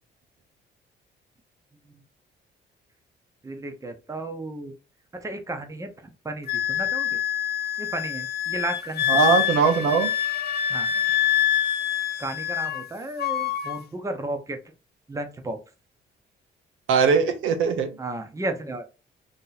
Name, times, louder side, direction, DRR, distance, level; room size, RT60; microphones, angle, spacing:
voice 1, 3.4-4.7 5.2-5.9 6.2-7.2 7.8-9.0 10.7-10.9 12.2-14.6 15.1-15.6 18.0-18.8, right 2 dB, 15° right, 6 dB, 0.8 m, -33 dB
Wind instrument woodwind instrument, 6.5-12.9 13.2-13.8, left 10 dB, 55° left, 0.5 m, -26 dB
voice 2, 9.1-10.1 16.9-17.9, right 5 dB, 85° right, 6 dB, 0.8 m, -20 dB
2.9 x 2.8 x 3.9 m, 0.32 s
cardioid pair, 90°, 20 cm